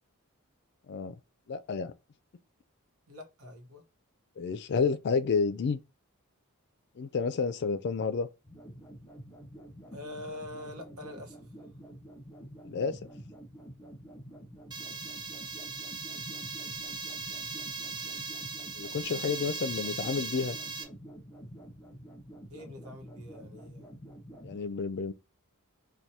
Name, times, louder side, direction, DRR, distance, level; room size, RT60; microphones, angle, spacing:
voice 1, 1.5-1.9 4.4-5.8 7.0-8.3 12.6-13.0 18.8-20.6 24.4-25.1, left 5 dB, 50° left, 0.4 m, -30 dB
voice 2, 3.1-3.8 9.9-11.4 22.5-23.9, left 2 dB, 75° right, 1.0 m, -44 dB
sound 1, 8.4-24.6, equal, 10° left, 1.0 m, -48 dB
sound 2, 14.7-20.8, right 4 dB, 20° right, 0.5 m, -38 dB
4.6 x 2.2 x 2.7 m
head